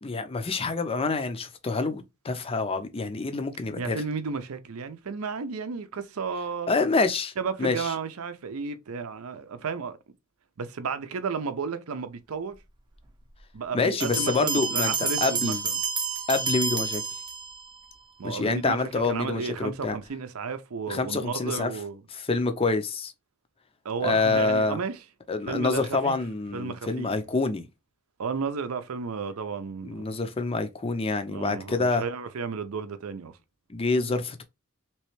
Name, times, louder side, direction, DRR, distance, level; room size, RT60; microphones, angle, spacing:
voice 1, 0.0-4.0 6.7-7.3 7.6-7.9 13.7-15.6 16.3-17.0 18.2-20.0 20.9-21.7 22.1-23.1 24.0-24.8 25.3-27.6 29.8-32.0 33.7-34.4, left 3 dB, 25° left, 0.5 m, -27 dB
voice 2, 3.8-6.7 7.4-10.0 10.6-12.6 13.5-15.8 18.2-22.0 23.8-25.0 25.5-26.2 26.5-27.1 28.2-30.2 31.3-33.3, right 5 dB, 75° right, 0.6 m, -33 dB
sound 1, 14.0-17.8, right 5 dB, 20° right, 0.6 m, -29 dB
3.2 x 3.0 x 3.1 m
head